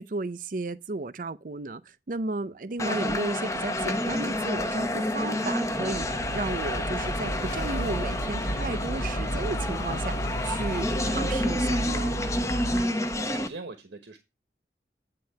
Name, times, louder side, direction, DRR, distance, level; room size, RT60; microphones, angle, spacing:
voice 1, 0.0-12.2, right 3 dB, 50° right, 0.5 m, -34 dB
sound 1, 2.8-13.5, left 1 dB, 15° left, 0.8 m, -29 dB
sound 2, 5.9-12.8, right 1 dB, 90° left, 2.0 m, -33 dB
voice 2, 12.8-14.2, right 3 dB, 85° right, 1.1 m, -43 dB
9.6 x 3.8 x 5.6 m
head